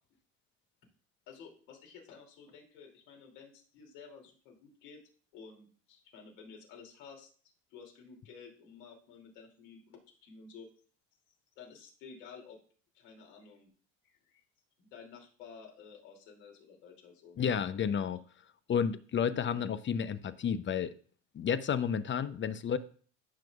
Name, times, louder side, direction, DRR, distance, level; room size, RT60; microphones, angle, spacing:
voice 1, 1.3-5.0 5.3-7.3 7.7-10.7 11.6-12.6 12.9-13.7 14.3-14.4 14.8-17.4, left 5 dB, 75° left, -1 dB, 2.8 m, -52 dB
voice 2, 17.4-18.2 18.7-20.9 21.3-22.8, left 7 dB, 30° left, 13 dB, 0.7 m, -31 dB
14.0 x 6.1 x 2.4 m, 0.43 s
hypercardioid pair, 75°, 37 cm